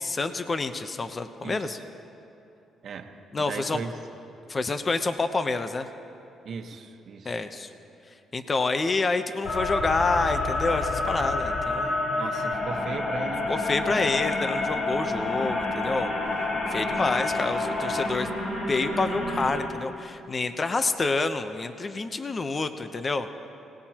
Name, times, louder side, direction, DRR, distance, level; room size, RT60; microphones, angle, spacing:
voice 1, 0.0-1.8 3.3-3.8 4.5-5.9 7.2-7.7 8.3-12.0 13.5-16.1 16.7-18.3 18.7-23.3, left 3 dB, 30° left, 9 dB, 0.8 m, -28 dB
voice 2, 1.4-1.8 2.8-3.9 6.4-7.4 12.1-14.2, right 5 dB, 60° right, 4 dB, 1.3 m, -38 dB
sound 1, 9.4-19.6, left 2 dB, 65° left, 3.9 m, -28 dB
26.0 x 18.5 x 3.0 m, 2.8 s
cardioid pair, 90°, 0 cm